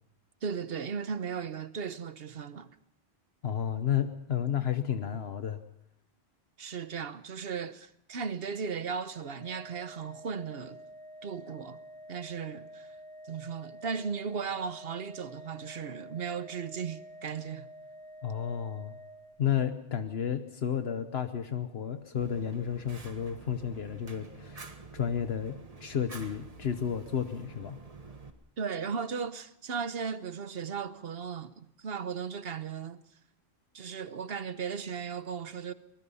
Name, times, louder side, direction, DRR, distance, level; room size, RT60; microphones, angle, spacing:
voice 1, 0.4-2.7 6.6-10.8 11.2-11.8 12.1-12.9 13.2-17.7 28.6-33.0 33.7-35.7, right 6 dB, 65° right, 1.1 m, -36 dB
voice 2, 3.4-5.6 18.2-19.0 19.4-24.6 24.9-27.8, left 8 dB, 75° left, 1.2 m, -32 dB
Organ, 9.1-19.8, equal, 20° right, 3.8 m, -49 dB
Fire, 22.2-28.3, right 3 dB, 35° right, 1.6 m, -48 dB
23.5 x 21.0 x 5.6 m
omnidirectional pair, 1.1 m